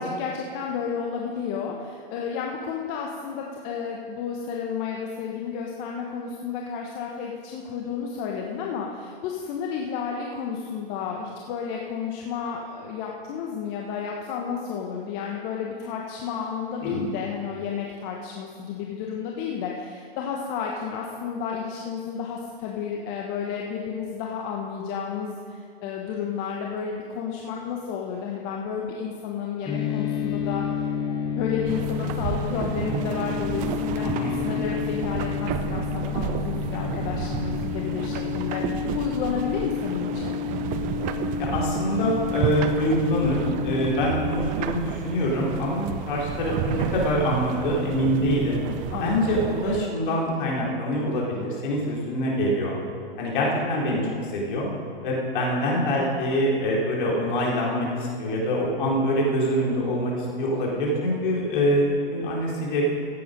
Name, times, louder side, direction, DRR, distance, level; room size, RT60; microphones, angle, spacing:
voice 1, 0.0-30.9 31.4-40.4 48.9-49.4, left 6 dB, 35° left, -1 dB, 1.2 m, -32 dB
sound 1, 29.7-44.4, left 10 dB, 15° left, 1.3 m, -30 dB
sound 2, 31.7-49.9, right 10 dB, 25° right, 0.6 m, -31 dB
voice 2, 41.4-48.6 49.0-52.8 53.2-54.7 55.0-60.1 60.4-62.9, equal, 55° left, -3 dB, 4.0 m, -25 dB
16.0 x 8.5 x 5.3 m, 2.2 s
hypercardioid pair, 125°, 29 cm